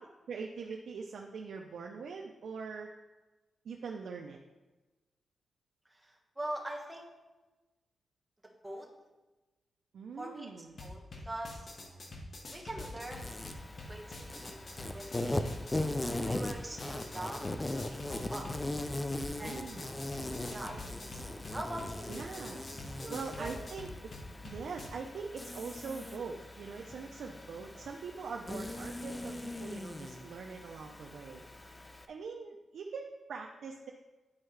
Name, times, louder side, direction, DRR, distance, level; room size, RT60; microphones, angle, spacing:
voice 1, 0.3-2.9 3.6-4.4 9.9-10.8 18.2-18.5 19.3-20.1 22.1-22.6 22.9-24.1 24.4-31.4 31.7-33.9, right 5 dB, 80° right, 0 dB, 0.5 m, -43 dB
voice 2, 5.9-7.1 8.6-8.9 10.2-10.5 10.8-11.7 12.5-13.4 13.9-14.6 14.9-15.5 16.1-18.5 19.4-19.6 20.5-22.1 23.0-23.7, right 1 dB, 15° right, 0 dB, 1.3 m, -43 dB
sound 1, 10.7-24.9, left 2 dB, 55° left, 1.1 m, -46 dB
Insect, 13.1-32.0, left 1 dB, 20° left, 0.5 m, -40 dB
9.6 x 4.5 x 3.3 m, 1.2 s
cardioid pair, 95°, 0 cm